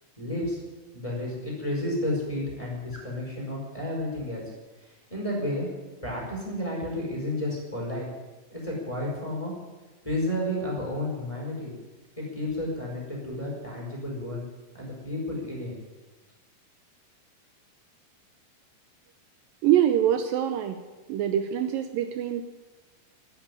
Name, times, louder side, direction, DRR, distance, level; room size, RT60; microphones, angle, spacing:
voice 1, 0.2-0.6 0.9-4.4 5.1-5.7 6.0-8.0 8.5-9.5 10.0-11.7 12.2-14.4 14.7-15.7, left 1 dB, 10° left, -3 dB, 4.7 m, -31 dB
voice 2, 19.6-20.8 21.1-22.4, right 10 dB, 80° right, 8 dB, 2.4 m, -24 dB
13.0 x 10.0 x 9.7 m, 1.2 s
omnidirectional pair, 4.3 m